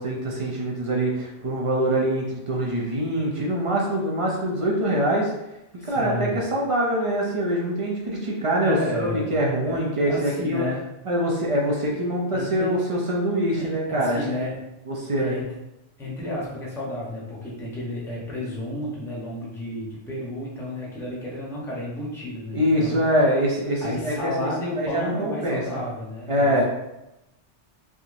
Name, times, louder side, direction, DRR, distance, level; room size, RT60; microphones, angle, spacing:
voice 1, 0.0-5.3 5.8-10.7 11.1-14.2 14.9-15.4 22.5-25.8 26.3-26.6, right 1 dB, 45° right, -2 dB, 0.4 m, -24 dB
voice 2, 5.8-6.4 8.6-9.3 9.6-10.8 12.3-12.7 13.5-14.6 15.2-15.4 16.0-23.0 23.8-26.6, left 1 dB, 5° left, -6 dB, 0.7 m, -32 dB
3.5 x 2.8 x 2.5 m, 0.92 s
omnidirectional pair, 1.2 m